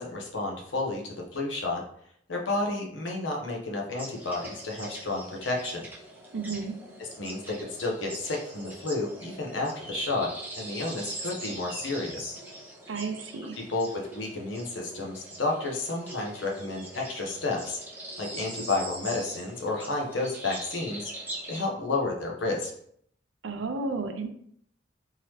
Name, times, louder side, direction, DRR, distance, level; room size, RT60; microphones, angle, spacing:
voice 1, 0.0-1.8 2.3-5.9 7.0-12.4 13.6-17.8 18.2-21.1 21.5-22.7, left 2 dB, 85° left, -1 dB, 0.9 m, -31 dB
sound 1, 4.0-21.6, right 1 dB, 10° right, 0.8 m, -42 dB
voice 2, 6.3-6.8 12.9-13.6 23.4-24.3, right 4 dB, 85° right, 6 dB, 0.6 m, -32 dB
3.8 x 2.9 x 3.1 m, 0.67 s
head